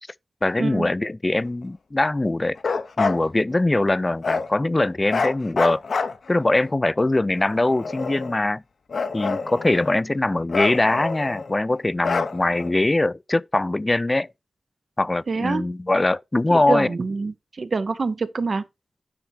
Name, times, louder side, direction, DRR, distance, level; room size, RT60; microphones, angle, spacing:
voice 1, 0.4-2.6 3.0-5.8 6.3-8.6 9.1-14.3 15.0-16.9, left 2 dB, 25° left, 0.3 m, -22 dB
Bark, 2.6-3.2 4.2-4.5 5.1-6.5 7.3-8.4 8.9-10.0 10.5-11.5 12.0-12.7, left 4 dB, 75° left, 0.8 m, -27 dB
voice 2, 15.3-15.6 16.5-18.6, right 4 dB, 55° right, 0.6 m, -26 dB
9.4 x 3.4 x 4.3 m
cardioid pair, 65°, 0 cm